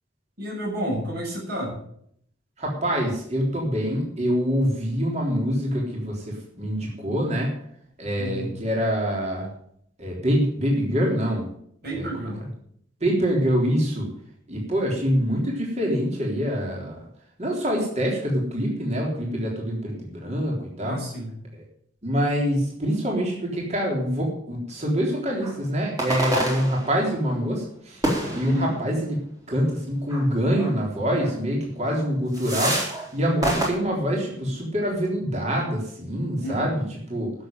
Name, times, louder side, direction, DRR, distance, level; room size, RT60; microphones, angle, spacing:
voice 1, 0.4-1.8 8.2-8.5 11.8-12.5 20.8-21.3 28.4-28.7 36.4-36.7, equal, 50° right, -3 dB, 7.6 m, -30 dB
voice 2, 2.6-7.6 8.0-9.5 10.0-11.5 11.9-12.3 13.0-14.1 14.5-17.0 17.4-21.0 22.0-28.0 28.3-29.2 29.5-32.8 33.1-37.3, equal, 35° right, -2 dB, 3.7 m, -25 dB
sound 1, 25.4-25.6 26.0-27.2 28.0-28.9 30.1-30.2 30.6-30.7 31.2-31.4 31.8-32.0 32.3-33.1 33.4-33.7, right 1 dB, 20° right, 3.6 m, -27 dB
11.5 x 7.3 x 9.1 m, 0.68 s
head